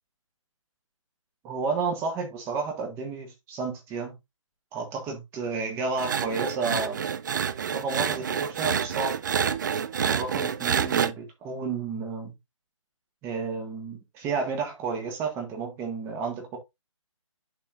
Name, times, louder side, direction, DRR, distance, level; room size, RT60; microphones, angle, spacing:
voice 1, 1.4-4.2 4.7-7.0 7.7-9.2 10.0-12.3 13.2-16.6, right 4 dB, 15° right, 1.6 m, -31 dB
sound 1, 6.0-11.1, right 7 dB, 35° right, 0.4 m, -28 dB
11.0 x 4.3 x 2.5 m
hypercardioid pair, 155°, 17 cm